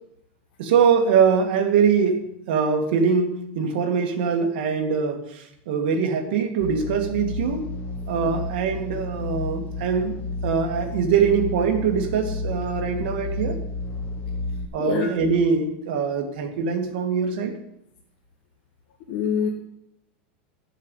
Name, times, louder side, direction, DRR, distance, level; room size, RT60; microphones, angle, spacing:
voice 1, 0.6-7.7 8.1-10.2 10.4-13.6 14.7-17.6, right 6 dB, 65° right, 3 dB, 2.1 m, -23 dB
sound 1, 6.6-14.7, left 2 dB, 25° left, 0.9 m, -31 dB
voice 2, 14.8-15.1 19.1-19.5, left 7 dB, 55° left, 1 dB, 1.4 m, -25 dB
12.5 x 7.3 x 5.5 m, 0.80 s
supercardioid pair, 165°, 6 cm